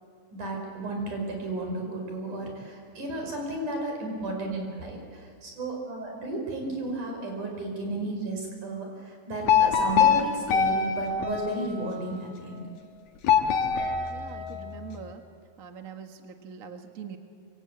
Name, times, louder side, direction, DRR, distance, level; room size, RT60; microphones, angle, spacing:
voice 1, 0.3-12.6, right 2 dB, 70° right, 2 dB, 6.6 m, -33 dB
sound 1, 9.5-12.2 13.2-15.0, left 7 dB, 85° left, 3.3 m, -24 dB
voice 2, 13.5-15.2 15.6-17.2, right 7 dB, 35° right, 5 dB, 1.4 m, -43 dB
26.0 x 24.0 x 8.8 m, 2.3 s
omnidirectional pair, 3.7 m